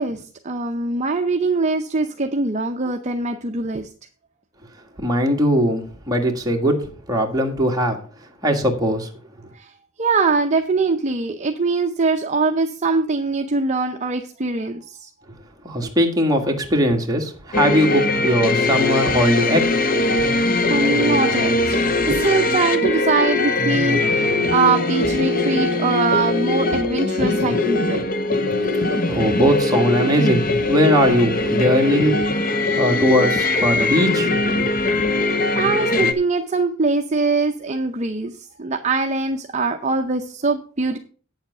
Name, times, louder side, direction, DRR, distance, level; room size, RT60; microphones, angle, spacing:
voice 1, 0.0-3.9 9.5-9.7 10.0-15.1 20.7-28.0 35.5-41.0, right 3 dB, 35° right, 5 dB, 0.6 m, -22 dB
voice 2, 5.0-8.0 8.4-9.1 15.6-19.6 19.9-20.1 28.8-32.1 32.8-34.7, equal, 20° right, 1 dB, 1.6 m, -20 dB
sound 1, 17.5-36.1, left 2 dB, 45° left, 0.8 m, -21 dB
8.9 x 7.2 x 5.5 m, 0.40 s
head